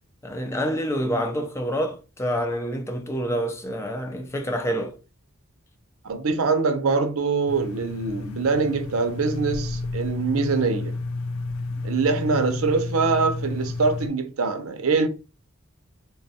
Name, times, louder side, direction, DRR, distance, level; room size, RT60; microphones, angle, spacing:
voice 1, 0.2-5.0, equal, 15° left, 0.4 m, -27 dB
voice 2, 6.0-11.0 11.8-15.1, right 4 dB, 90° right, 0.6 m, -24 dB
sound 1, 7.5-14.1, left 3 dB, 80° left, 0.4 m, -31 dB
3.4 x 2.2 x 2.7 m
head